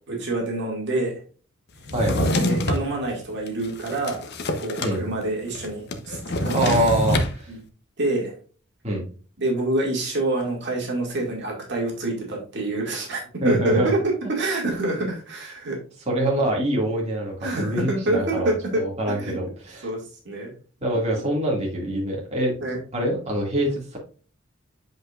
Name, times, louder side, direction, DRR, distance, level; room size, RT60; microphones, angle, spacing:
voice 1, 0.1-1.1 2.3-6.7 7.5-7.6 8.0-8.3 9.4-15.8 17.4-19.4 19.8-20.5 22.6-22.8, right 2 dB, 55° right, -1 dB, 2.2 m, -27 dB
Drawer open or close, 1.8-2.9 3.5-5.0 5.2-5.3 5.5-7.3, left 1 dB, 55° left, 0.9 m, -25 dB
voice 2, 1.9-2.3 4.8-5.1 6.5-7.5 8.8-9.0 13.4-13.9 16.1-19.9 20.8-24.0, right 1 dB, 30° right, -3 dB, 2.1 m, -25 dB
8.0 x 5.3 x 2.4 m, 0.39 s
head